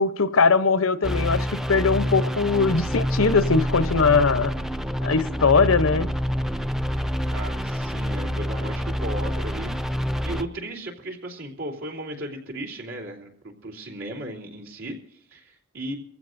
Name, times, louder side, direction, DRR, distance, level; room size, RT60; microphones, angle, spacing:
voice 1, 0.0-4.5 5.0-6.1, left 4 dB, 90° left, 0.8 m, -20 dB
sound 1, 1.0-10.4, equal, ahead, 0.5 m, -27 dB
voice 2, 7.3-9.7 10.2-16.0, right 1 dB, 75° right, 3.3 m, -36 dB
24.5 x 15.5 x 2.6 m
head